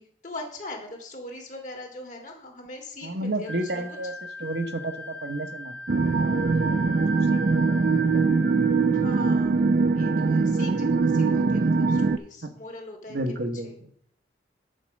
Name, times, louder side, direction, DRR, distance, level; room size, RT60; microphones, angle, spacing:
voice 1, 0.0-3.8 8.9-9.6 9.9-13.2 13.6-13.7, left 2 dB, 45° left, 2 dB, 1.9 m, -41 dB
voice 2, 3.0-4.1 4.4-5.8 6.1-8.2 12.4-12.6 13.1-13.9, right 1 dB, 65° right, 5 dB, 1.0 m, -32 dB
Wind instrument woodwind instrument, 3.5-8.9, left 1 dB, 5° left, 0.8 m, -39 dB
sound 1, 5.9-12.2, right 4 dB, 50° right, 0.4 m, -22 dB
9.0 x 4.5 x 6.3 m, 0.63 s
head